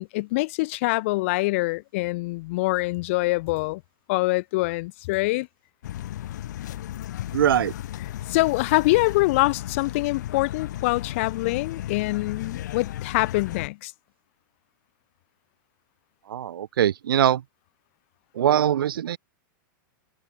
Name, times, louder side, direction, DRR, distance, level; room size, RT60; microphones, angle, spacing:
voice 1, 0.0-3.8 4.1-5.5 8.3-13.9, left 22 dB, 35° left, 2.4 m, -24 dB
sound 1, 5.8-13.7, left 13 dB, 55° left, 5.1 m, -35 dB
voice 2, 7.3-7.7 16.3-17.4 18.3-19.2, right 10 dB, 85° right, 2.5 m, -22 dB
supercardioid pair, 180°, 11 cm